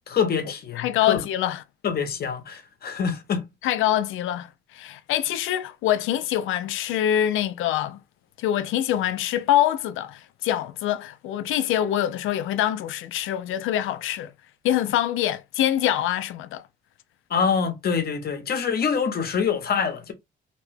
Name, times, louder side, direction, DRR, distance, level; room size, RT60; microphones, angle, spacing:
voice 1, 0.1-1.2 1.8-3.4 17.3-20.1, left 6 dB, 50° left, 0.9 m, -25 dB
voice 2, 0.8-1.6 3.6-8.0 8.4-14.3 14.6-16.6, left 12 dB, 85° left, 0.4 m, -25 dB
2.9 x 2.2 x 3.2 m
cardioid pair, 90°, 20 cm